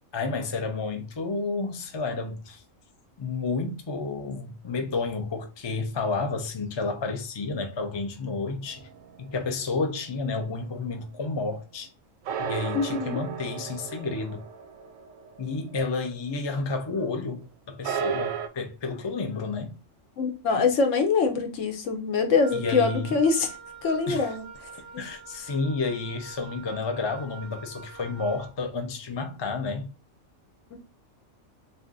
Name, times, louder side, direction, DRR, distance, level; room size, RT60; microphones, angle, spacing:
voice 1, 0.1-2.6 3.2-8.9 9.2-11.9 12.4-14.4 15.4-19.7 22.5-23.1 24.1-24.3 25.0-29.9, left 3 dB, 40° left, 0.4 m, -31 dB
sound 1, 8.7-10.2 12.3-16.4 16.6-16.7 17.8-18.5, right 7 dB, 90° right, 1.0 m, -34 dB
voice 2, 12.7-13.2 20.2-23.5 23.8-24.4 24.9-25.0 30.7-30.8, left 4 dB, 75° left, 1.1 m, -24 dB
Wind instrument woodwind instrument, 22.3-28.6, right 6 dB, 20° left, 1.2 m, -45 dB
3.4 x 2.5 x 3.7 m
omnidirectional pair, 1.3 m